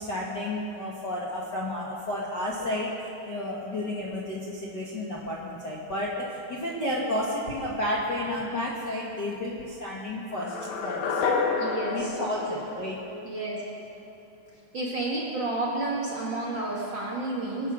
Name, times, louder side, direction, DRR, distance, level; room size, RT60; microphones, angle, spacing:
voice 1, 0.0-10.6 10.8-11.2 11.9-12.9, left 1 dB, 45° left, -5 dB, 1.5 m, -31 dB
sound 1, 10.4-13.5, left 4 dB, 85° left, 2.9 m, -29 dB
voice 2, 11.5-12.7 13.2-13.6 14.7-17.7, right 2 dB, 40° right, -5 dB, 1.9 m, -31 dB
24.0 x 8.7 x 6.2 m, 2.8 s
omnidirectional pair, 4.0 m